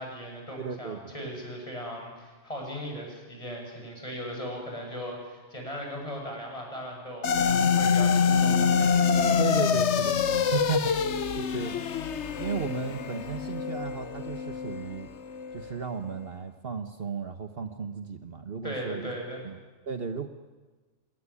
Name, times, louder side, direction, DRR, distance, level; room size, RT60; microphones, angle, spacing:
voice 1, 0.0-9.0 18.6-19.5, equal, 30° left, 0 dB, 7.5 m, -38 dB
voice 2, 0.6-1.3 9.4-12.1 12.4-15.1 15.5-19.1 19.4-19.6 19.9-20.3, right 6 dB, 55° right, 7 dB, 1.4 m, -35 dB
sound 1, 7.2-15.7, left 6 dB, 75° left, 1.3 m, -26 dB
26.5 x 19.0 x 9.8 m, 1.3 s
omnidirectional pair, 1.2 m